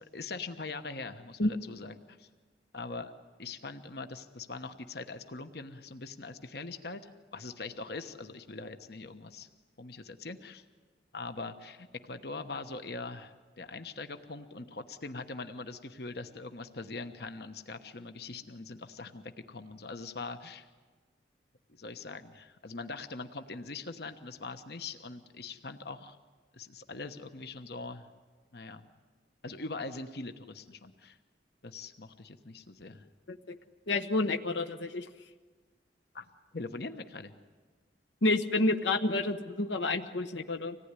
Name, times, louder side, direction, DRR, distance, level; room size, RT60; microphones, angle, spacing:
voice 1, 0.0-2.3 2.7-3.1 3.4-9.5 9.8-10.6 11.1-20.7 21.7-26.2 26.5-28.1 28.5-28.9 29.4-31.2 31.6-33.1 36.1-37.3, left 3 dB, 60° left, 9 dB, 1.2 m, -42 dB
voice 2, 33.9-35.1 38.2-40.8, left 2 dB, 80° left, 7 dB, 1.1 m, -29 dB
26.0 x 18.5 x 9.8 m, 1.4 s
head